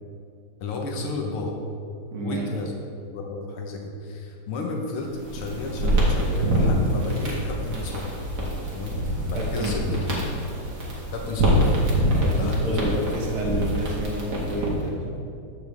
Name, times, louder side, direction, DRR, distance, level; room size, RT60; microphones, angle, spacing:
voice 1, 0.6-1.6 2.2-2.7 3.1-8.2 8.7-10.4 11.1-11.7 12.4-12.8, left 3 dB, 80° left, 0 dB, 2.0 m, -32 dB
voice 2, 2.1-2.5 9.4-9.7 12.2-15.2, right 1 dB, 80° right, -2 dB, 2.3 m, -29 dB
sound 1, 5.1-14.9, right 1 dB, 50° right, 2.4 m, -25 dB
14.0 x 7.2 x 3.5 m, 2.4 s
omnidirectional pair, 2.4 m